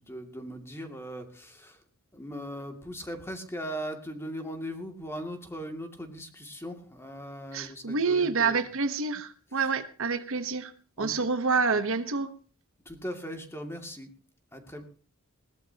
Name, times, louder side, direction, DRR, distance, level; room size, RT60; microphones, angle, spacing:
voice 1, 0.0-1.8 2.1-8.7 9.5-9.6 11.0-11.3 12.8-14.1 14.5-14.8, equal, 10° left, 3 dB, 2.4 m, -39 dB
voice 2, 7.5-10.7 11.0-12.3, right 4 dB, 60° right, 10 dB, 1.1 m, -27 dB
20.5 x 18.5 x 2.9 m, 0.38 s
head